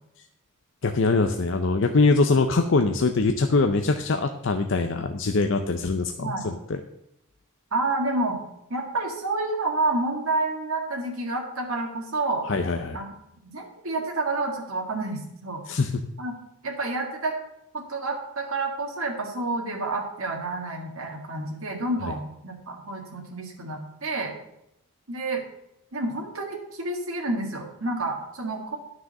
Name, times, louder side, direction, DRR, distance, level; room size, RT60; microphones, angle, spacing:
voice 1, 0.8-6.8 12.5-13.0 15.7-15.9, left 3 dB, 55° left, 6 dB, 0.6 m, -23 dB
voice 2, 7.7-8.4 8.7-12.5 12.9-13.1 13.4-15.6 16.2-16.3 16.6-17.3 17.7-24.3 25.1-25.4 25.9-28.8, right 2 dB, 70° right, 0 dB, 1.8 m, -29 dB
9.7 x 6.3 x 6.4 m, 0.83 s
head